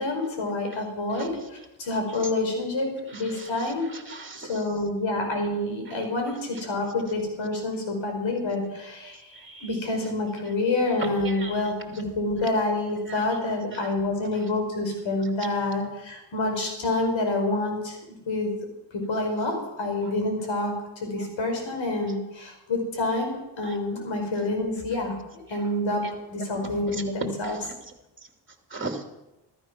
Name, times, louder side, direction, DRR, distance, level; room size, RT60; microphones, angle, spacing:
voice 1, 0.0-3.9 4.4-9.2 9.6-18.0 18.2-18.6 18.9-27.6, left 2 dB, 75° left, 3 dB, 5.1 m, -28 dB
voice 2, 3.1-4.6 6.3-6.6 7.5-7.6 9.4-9.8 11.0-11.8 13.1-13.3 13.7-13.9 16.6-16.7 20.0-20.1 23.6-23.8 25.5-25.7 26.0-27.0 27.4-27.6 28.7-29.0, right 3 dB, 25° right, 4 dB, 2.9 m, -39 dB
14.0 x 14.0 x 6.2 m, 0.95 s
cardioid pair, 55°, 46 cm